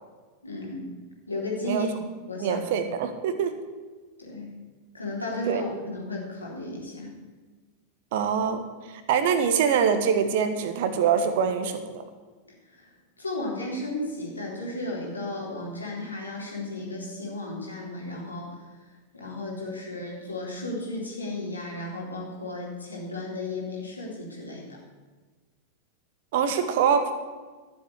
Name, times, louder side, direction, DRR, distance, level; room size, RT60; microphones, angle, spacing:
voice 1, 0.4-0.9 1.3-1.9 2.2-2.6 4.2-4.5 4.9-7.1 12.7-12.9 13.2-18.5 19.1-24.7, left 2 dB, 80° left, -3 dB, 3.7 m, -34 dB
voice 2, 2.4-3.5 5.5-5.6 8.1-8.6 9.1-12.0 26.3-27.1, right 7 dB, 50° right, 9 dB, 1.3 m, -24 dB
13.0 x 7.5 x 8.0 m, 1.4 s
figure-of-eight pair, 90°, 0 cm